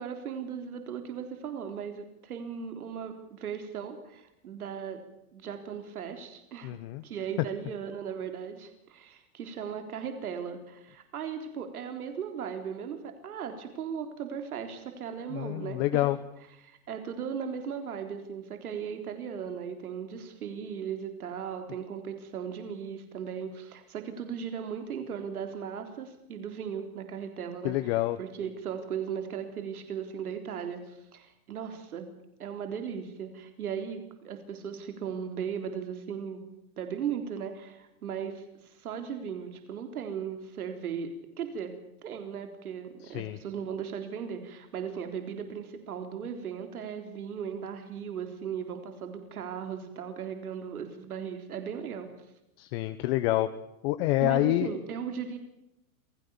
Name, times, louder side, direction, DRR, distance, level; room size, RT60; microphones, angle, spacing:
voice 1, 0.0-5.0 5.3-6.8 7.0-16.1 16.6-32.1 32.4-36.5 36.8-41.1 41.4-41.7 42.0-52.1 54.2-55.4, right 7 dB, 90° right, 6 dB, 3.9 m, -37 dB
voice 2, 6.6-7.0 15.3-16.2 27.6-28.2 43.0-43.4 52.6-53.5 53.8-54.7, left 16 dB, 45° left, 11 dB, 1.3 m, -27 dB
27.5 x 18.0 x 7.2 m, 0.88 s
supercardioid pair, 145°, 43 cm